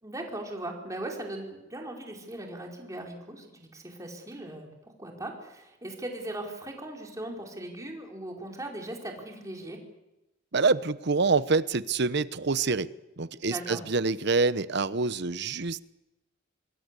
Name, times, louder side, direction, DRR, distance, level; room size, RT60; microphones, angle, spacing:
voice 1, 0.0-9.8 13.4-13.8, right 1 dB, 15° right, 1 dB, 4.9 m, -39 dB
voice 2, 10.5-12.9 13.2-15.8, right 4 dB, 60° right, 15 dB, 0.9 m, -26 dB
26.0 x 22.0 x 8.4 m, 0.97 s
head